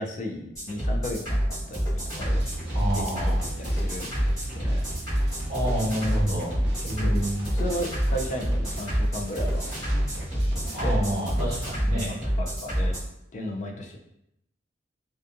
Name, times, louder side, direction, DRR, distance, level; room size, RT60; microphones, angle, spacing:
voice 1, 0.0-2.4 2.9-4.1 4.6-4.8 6.8-7.2 7.5-9.7 10.1-11.0 12.1-13.0 13.3-14.0, equal, 45° left, 2 dB, 0.4 m, -35 dB
sound 1, 0.5-13.0, equal, 20° left, 1.2 m, -27 dB
sound 2, 1.8-11.7, right 1 dB, 60° right, 0.6 m, -40 dB
voice 2, 2.7-3.4 5.5-6.5 6.8-7.5 10.6-12.1, equal, 45° right, -8 dB, 0.9 m, -29 dB
2.5 x 2.5 x 2.4 m, 0.80 s
head